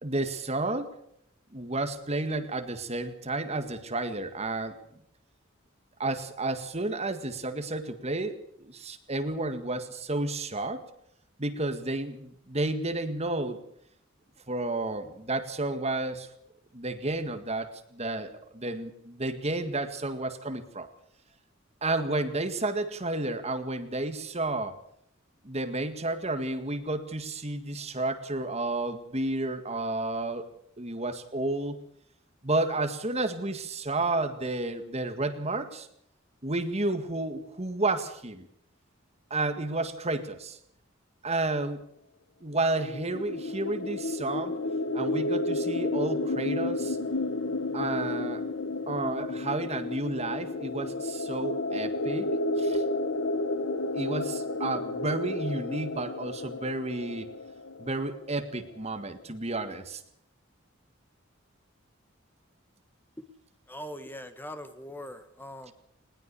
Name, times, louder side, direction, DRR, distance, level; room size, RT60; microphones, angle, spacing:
voice 1, 0.0-1.0 1.5-4.8 6.0-10.8 11.4-13.6 14.5-16.3 16.7-20.9 21.8-24.8 25.4-30.5 30.8-31.8 32.4-35.9 36.4-38.5 39.3-40.6 41.2-41.9 42.4-44.6 44.9-47.0 47.7-48.4 48.9-52.3 52.6-52.8 53.9-57.3 57.8-60.0, right 2 dB, 30° right, 8 dB, 1.9 m, -31 dB
sound 1, 42.7-58.4, left 2 dB, 75° left, 1.2 m, -31 dB
voice 2, 63.7-65.7, equal, 10° left, 9 dB, 1.6 m, -41 dB
20.0 x 20.0 x 7.0 m, 0.70 s
head